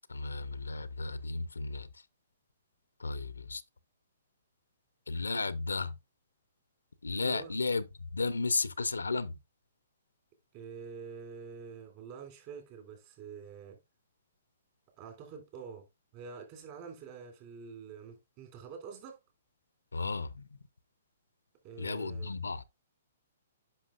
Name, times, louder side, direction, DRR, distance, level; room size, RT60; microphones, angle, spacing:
voice 1, 0.1-2.0 3.0-3.6 5.1-6.0 7.0-9.4 19.9-20.6 21.8-22.6, left 3 dB, 90° left, 0.6 m, -34 dB
voice 2, 7.2-7.5 10.5-13.8 15.0-15.9 16.1-19.2 21.6-22.3, right 6 dB, 40° right, 3.3 m, -46 dB
10.0 x 5.7 x 2.5 m
hypercardioid pair, 125°, 0 cm